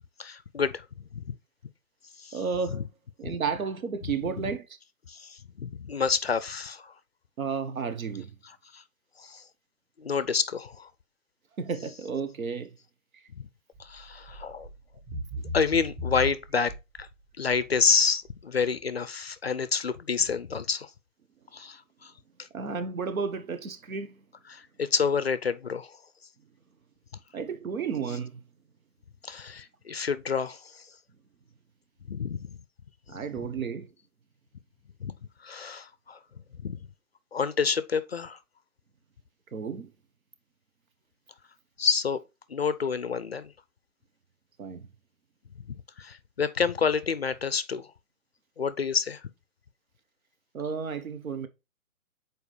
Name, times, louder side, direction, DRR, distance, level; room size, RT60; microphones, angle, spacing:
voice 1, 0.2-0.8 1.1-1.3 2.2-2.4 2.7-2.8 3.2-3.4 4.4-4.5 5.1-6.9 8.7-8.8 9.2-9.4 10.0-10.9 13.4-13.5 13.8-14.7 15.5-16.7 17.0-17.1 17.4-20.9 21.5-22.1 22.4-22.5 24.5-26.0 29.2-30.8 32.1-32.6 35.0-35.1 35.4-36.2 36.6-36.8 37.3-38.4 41.8-42.2 42.5-43.5 46.0-47.9 48.6-49.2, left 6 dB, 50° left, 0.4 m, -28 dB
voice 2, 2.3-2.8 3.2-4.7 7.4-8.3 11.6-12.7 22.5-24.2 27.3-28.4 33.1-33.9 39.5-39.9 44.6-44.9 50.5-51.5, right 5 dB, 75° right, 1.3 m, -32 dB
sound 1, 13.7-14.0 14.3-14.7 15.1-17.0 17.5-17.9 18.3-18.4, left 1 dB, 25° right, 1.8 m, -35 dB
7.2 x 4.5 x 3.2 m
hypercardioid pair, 175°, 42 cm